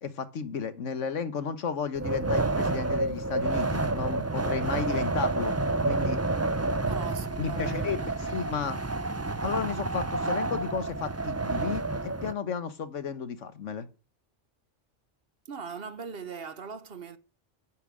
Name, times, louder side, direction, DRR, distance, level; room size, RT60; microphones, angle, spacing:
voice 1, 0.0-6.2 7.4-8.8 9.4-13.9, left 6 dB, 80° left, 1.5 m, -33 dB
Wind, 1.9-12.3, right 2 dB, 20° right, 0.5 m, -29 dB
voice 2, 6.8-8.1 15.4-17.2, right 5 dB, 50° right, 1.2 m, -40 dB
10.0 x 9.4 x 7.6 m
omnidirectional pair, 1.3 m